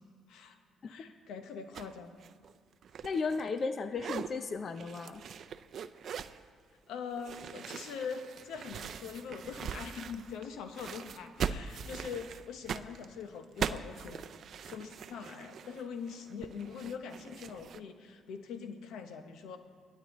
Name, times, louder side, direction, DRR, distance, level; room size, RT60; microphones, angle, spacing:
voice 1, 0.9-2.1 6.9-14.2 14.6-19.6, left 6 dB, 80° left, 7 dB, 0.9 m, -43 dB
sound 1, 1.7-1.9 2.2-3.7 3.9-4.3 4.8-6.4 7.2-10.5 10.7-17.8, right 7 dB, 60° right, 0.4 m, -41 dB
voice 2, 3.0-5.2, left 4 dB, 45° left, 9 dB, 0.6 m, -34 dB
23.5 x 8.5 x 3.1 m, 2.3 s
cardioid pair, 80°, 0 cm